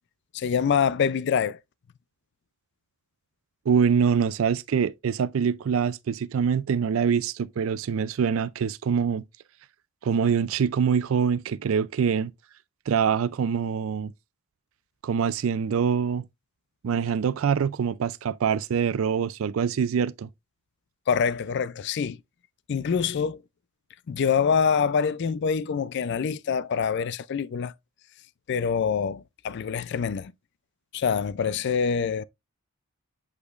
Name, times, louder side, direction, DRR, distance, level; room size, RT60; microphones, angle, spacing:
voice 1, 0.3-1.6 21.1-22.2 22.7-23.4 24.1-27.7 28.5-30.3 30.9-32.2, left 6 dB, 50° left, 0.3 m, -25 dB
voice 2, 3.7-9.2 10.0-12.3 12.9-14.1 15.0-16.2 16.8-20.3, right 6 dB, 65° right, 0.4 m, -24 dB
8.2 x 5.1 x 2.4 m
head